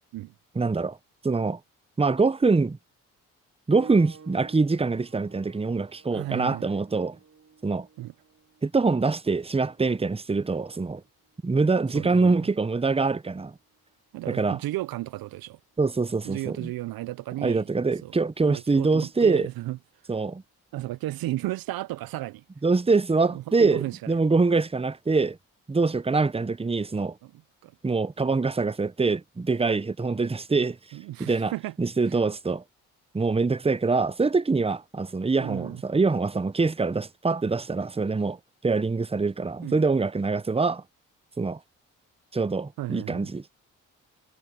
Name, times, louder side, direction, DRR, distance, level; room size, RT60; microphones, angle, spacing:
voice 1, 0.5-1.0 1.2-1.6 2.0-2.8 3.7-7.2 7.6-7.9 8.6-11.0 11.4-13.5 14.3-14.6 15.8-16.7 17.4-19.5 20.1-20.4 22.6-25.4 25.7-27.1 27.8-30.8 31.2-31.5 31.8-32.6 33.1-38.4 38.6-40.8 41.4-41.6 42.3-43.4, right 4 dB, 15° right, 0.9 m, -24 dB
sound 1, 3.7-13.9 14.9-15.0 15.7-15.8, right 6 dB, 45° right, 5.5 m, -52 dB
voice 2, 6.1-6.6 8.0-8.1 11.9-12.4 14.1-15.6 16.2-17.7 18.0-18.2 18.4-19.8 20.7-22.4 23.3-24.2 27.2-27.7 30.9-31.7 35.4-35.8 39.6-39.8 42.8-43.3, right 16 dB, 70° right, 0.6 m, -34 dB
supercardioid pair, 55°, 37 cm